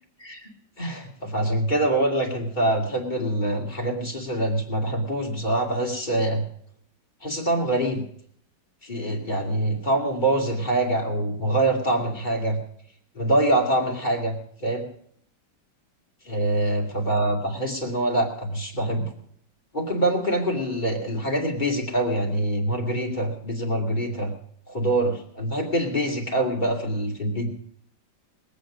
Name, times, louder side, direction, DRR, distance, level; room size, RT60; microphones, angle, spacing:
voice 1, 0.8-6.4 7.2-8.0 8.8-12.6 13.1-14.8 16.2-19.1 19.7-24.3 24.7-27.5, right 1 dB, 25° left, 0 dB, 2.7 m, -25 dB
21.5 x 8.6 x 5.1 m, 0.64 s
omnidirectional pair, 2.1 m